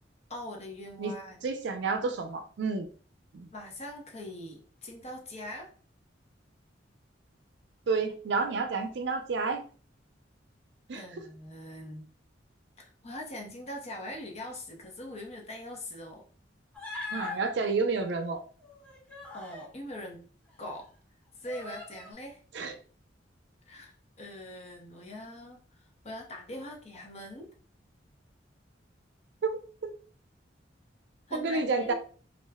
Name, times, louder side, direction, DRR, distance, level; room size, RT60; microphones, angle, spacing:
voice 1, 0.3-1.4 3.5-5.7 10.9-12.1 12.8-16.2 19.3-20.2 20.6-20.9 21.4-22.4 23.7-27.5 31.3-31.9, left 1 dB, 35° left, 1 dB, 0.7 m, -42 dB
voice 2, 1.4-2.9 3.3-3.5 7.9-9.6 10.9-11.0 17.1-18.4 22.5-22.7 29.4-29.6 29.8-29.9 31.3-31.9, right 4 dB, 65° right, 6 dB, 0.4 m, -30 dB
Human voice, 16.7-17.4 18.6-19.7 20.5-20.6 21.4-22.1, left 3 dB, 10° left, 0.9 m, -40 dB
2.4 x 2.1 x 3.4 m, 0.41 s
head